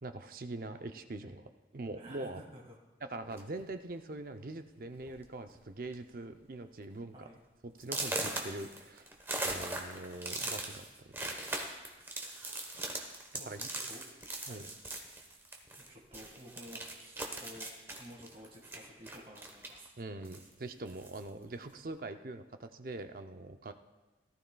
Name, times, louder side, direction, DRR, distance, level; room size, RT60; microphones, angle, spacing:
voice 1, 0.0-2.4 3.0-7.1 7.6-9.1 9.4-10.8 11.1-11.6 13.5-13.6 14.5-14.7 20.0-23.7, right 2 dB, 50° right, 7 dB, 0.6 m, -43 dB
voice 2, 1.9-2.8 7.1-7.4 13.4-14.0 14.4-14.6 15.9-19.9, equal, 30° right, -2 dB, 1.8 m, -52 dB
sound 1, 3.3-3.6 4.4-4.5 4.9-5.2 5.5-5.9 6.4-6.5 7.0-7.1 7.8-15.9 16.1-19.9 20.2-21.3, right 2 dB, 15° right, 1.0 m, -40 dB
17.5 x 12.5 x 2.3 m, 1.1 s
head